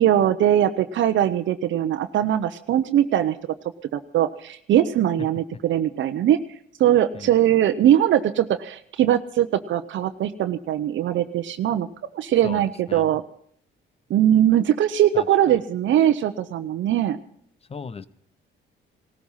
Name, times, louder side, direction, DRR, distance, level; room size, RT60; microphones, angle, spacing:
voice 1, 0.0-3.4 3.9-6.4 6.8-11.9 12.1-13.2 14.1-17.2, right 11 dB, 70° right, 9 dB, 0.8 m, -21 dB
voice 2, 17.7-18.1, left 5 dB, 30° left, 18 dB, 0.8 m, -36 dB
18.5 x 13.5 x 5.6 m, 0.67 s
cardioid pair, 90°, 20 cm